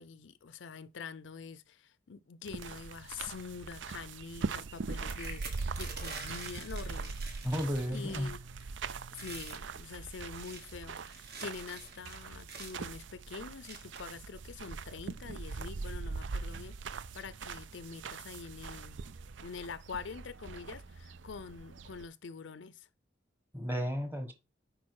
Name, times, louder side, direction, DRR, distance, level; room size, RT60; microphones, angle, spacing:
voice 1, 0.0-7.1 7.9-8.4 9.2-19.0 19.4-22.9, left 5 dB, 75° left, 0.5 m, -45 dB
sound 1, 2.4-22.0, right 4 dB, 75° right, 0.5 m, -42 dB
sound 2, 5.0-8.3 8.6-8.8 9.1-9.7 10.2-12.9 13.6-14.2 14.9-15.0 15.3-15.6, right 4 dB, 60° right, 1.9 m, -46 dB
voice 2, 7.4-8.3 23.5-24.3, equal, 10° right, 1.2 m, -33 dB
8.6 x 5.1 x 4.7 m
head